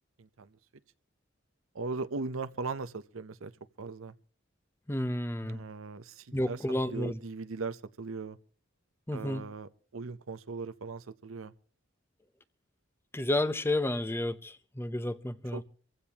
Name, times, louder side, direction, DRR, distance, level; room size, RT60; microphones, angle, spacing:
voice 1, 0.2-0.6 1.7-3.5 3.8-4.1 5.4-8.4 9.1-11.5 15.5-15.6, right 4 dB, 85° right, 0.7 m, -39 dB
voice 2, 4.9-5.6 6.3-7.2 9.1-9.4 13.1-15.6, left 1 dB, 10° left, 0.7 m, -31 dB
25.0 x 15.5 x 2.9 m
head